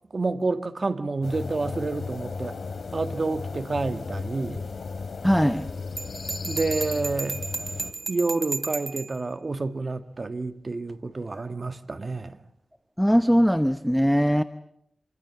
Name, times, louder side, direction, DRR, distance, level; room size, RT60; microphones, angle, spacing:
voice 1, 0.1-2.6 2.9-4.7 6.4-7.4 8.1-12.4, right 3 dB, 45° right, 1.7 m, -29 dB
sound 1, 1.2-7.9, left 4 dB, 75° left, 2.7 m, -35 dB
voice 2, 5.2-5.7 13.0-14.4, equal, ahead, 0.9 m, -20 dB
Bell, 6.0-9.2, right 4 dB, 60° right, 3.1 m, -33 dB
27.5 x 23.5 x 7.2 m
cardioid pair, 70°, 0 cm